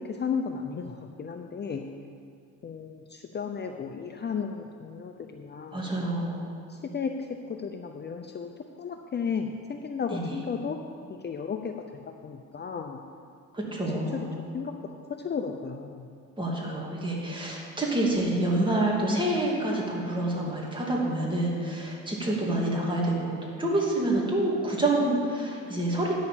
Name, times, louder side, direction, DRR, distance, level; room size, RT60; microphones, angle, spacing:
voice 1, 0.1-1.9 2.6-6.0 6.7-7.1 7.5-8.5 8.8-10.8 11.2-11.7 12.0-13.0 13.6-13.7 14.1-14.7 15.2-16.1 22.2-22.3, left 6 dB, 35° left, 4 dB, 0.6 m, -34 dB
voice 2, 5.7-6.6 10.1-10.3 13.5-14.3 16.4-26.2, right 1 dB, 15° right, -3 dB, 2.6 m, -27 dB
9.8 x 6.4 x 7.1 m, 2.3 s
cardioid pair, 90°, 30 cm